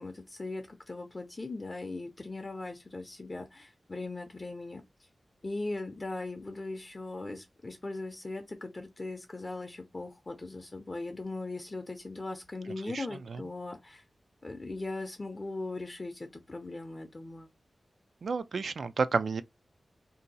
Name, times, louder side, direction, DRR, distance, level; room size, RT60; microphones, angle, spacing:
voice 1, 0.0-4.8 5.4-14.0 14.4-17.5, left 2 dB, 35° left, 0.5 m, -39 dB
voice 2, 18.2-19.4, right 4 dB, 75° right, 0.3 m, -30 dB
2.7 x 2.3 x 3.9 m
wide cardioid pair, 95°, 0 cm